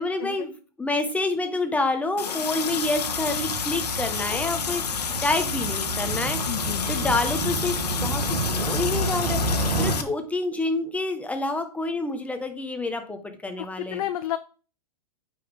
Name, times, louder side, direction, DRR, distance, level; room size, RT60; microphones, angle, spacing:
voice 1, 0.0-6.4 6.9-7.8 8.0-14.0, left 2 dB, 5° left, 7 dB, 1.2 m, -28 dB
Water tap faucet, 2.2-10.0, left 7 dB, 80° left, 1.1 m, -30 dB
Motorcycle, 2.4-9.9, right 2 dB, 80° right, 2.4 m, -30 dB
voice 2, 6.5-6.9 13.6-14.4, left 13 dB, 60° left, 11 dB, 0.5 m, -31 dB
8.4 x 5.4 x 3.6 m, 0.37 s
hypercardioid pair, 115°, 20 cm